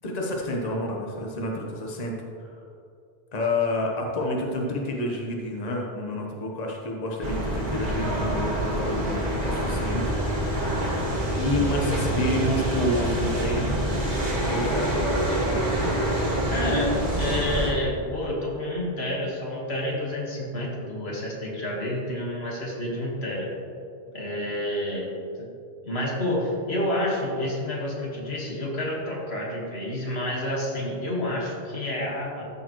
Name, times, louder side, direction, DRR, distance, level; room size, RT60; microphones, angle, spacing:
voice 1, 0.0-2.1 2.5-2.6 3.3-10.4 11.3-13.7 14.5-15.3, left 1 dB, 40° left, -1 dB, 1.2 m, -29 dB
sound 1, 7.2-17.7, right 1 dB, 40° right, 1.6 m, -26 dB
voice 2, 16.5-23.5 24.1-25.1 25.4-25.5 25.8-32.4, left 1 dB, 90° left, -3 dB, 1.9 m, -29 dB
13.5 x 6.9 x 3.1 m, 2.6 s
omnidirectional pair, 1.0 m